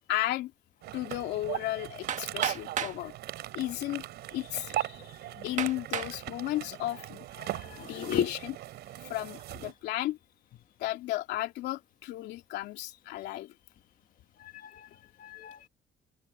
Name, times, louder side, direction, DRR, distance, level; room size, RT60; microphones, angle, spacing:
voice 1, 0.1-0.5 0.9-3.1 3.5-4.0 4.3-7.2 7.8-8.5 9.0-10.2 10.8-13.5, left 15 dB, 85° left, 2.8 m, -34 dB
sound 1, 0.8-9.7, right 14 dB, 75° right, 5.8 m, -39 dB
Hammer, 2.1-3.0 3.9-4.0 4.6-4.7 5.6-6.2 6.8-7.2, right 8 dB, 45° right, 1.6 m, -34 dB
voice 2, 7.4-8.3 14.4-14.9 15.2-15.7, left 9 dB, 55° left, 1.9 m, -35 dB
cardioid pair, 110°, 17 cm